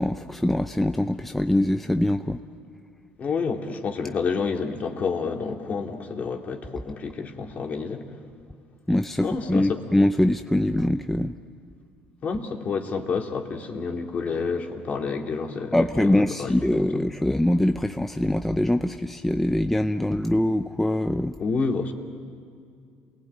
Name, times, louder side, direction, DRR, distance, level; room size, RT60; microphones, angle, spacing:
voice 1, 0.0-2.4 8.9-11.3 15.7-21.4, left 1 dB, 5° left, 7 dB, 0.6 m, -23 dB
voice 2, 3.2-8.0 9.2-9.8 12.2-16.9 21.4-21.9, left 5 dB, 40° left, 3 dB, 2.5 m, -29 dB
28.5 x 19.0 x 9.1 m, 2.3 s
supercardioid pair, 100°, 4 cm